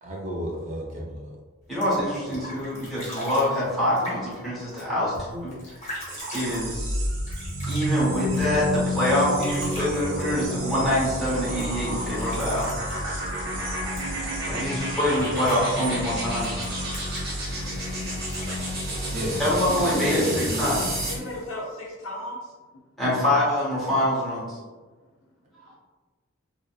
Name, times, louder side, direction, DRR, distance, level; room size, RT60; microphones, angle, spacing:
voice 1, 0.0-1.3 19.1-20.7, equal, 35° right, -2 dB, 0.4 m, -31 dB
sound 1, 1.6-21.2, equal, 35° left, 0.9 m, -43 dB
voice 2, 1.7-5.5 6.3-7.0 7.7-12.7 14.5-16.6 19.4-21.0 23.0-24.6, left 1 dB, ahead, -9 dB, 1.1 m, -25 dB
sound 2, 6.1-17.6, right 3 dB, 80° right, 0.9 m, -38 dB
sound 3, 6.6-21.3, equal, 50° right, 0.9 m, -30 dB
voice 3, 21.1-22.6, left 1 dB, 70° left, -4 dB, 0.7 m, -35 dB
2.6 x 2.1 x 2.3 m, 1.3 s
head